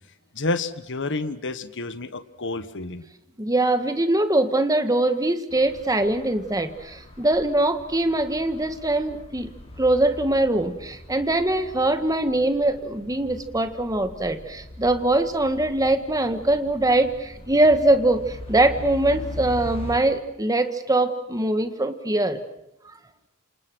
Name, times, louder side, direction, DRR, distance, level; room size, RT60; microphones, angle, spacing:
voice 1, 0.3-3.0, left 2 dB, 55° left, 12 dB, 1.4 m, -29 dB
voice 2, 3.4-9.5 9.8-22.4, right 2 dB, 15° right, 9 dB, 1.7 m, -22 dB
sound 1, 5.5-20.0, left 1 dB, 25° left, 5.4 m, -41 dB
28.0 x 27.5 x 6.4 m, 0.84 s
head